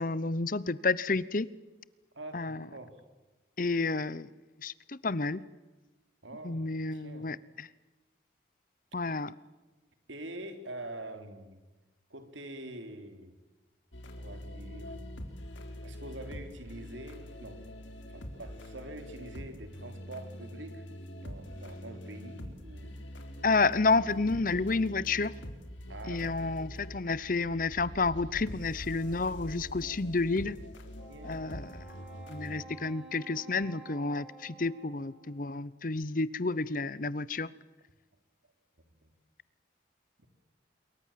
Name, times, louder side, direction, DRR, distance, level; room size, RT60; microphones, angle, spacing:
voice 1, 0.0-1.5 2.3-2.6 3.6-4.3 4.6-5.4 6.4-7.7 8.9-9.3 23.4-25.3 26.1-30.6 31.2-31.7 32.3-37.5, left 3 dB, 45° left, 19 dB, 0.8 m, -30 dB
voice 2, 2.2-3.0 6.2-6.6 6.9-7.3 9.0-9.2 10.1-11.6 12.1-13.3 14.2-15.0 15.8-17.6 18.1-20.8 21.2-23.0 25.9-26.6 31.1-31.5 39.0-39.1 40.2-40.3, right 1 dB, 90° right, 7 dB, 3.6 m, -45 dB
sound 1, 13.9-32.6, equal, 85° left, 3.9 m, -44 dB
Wind instrument woodwind instrument, 31.0-35.6, right 5 dB, 5° right, 5.0 m, -52 dB
27.0 x 23.5 x 7.5 m, 1.2 s
head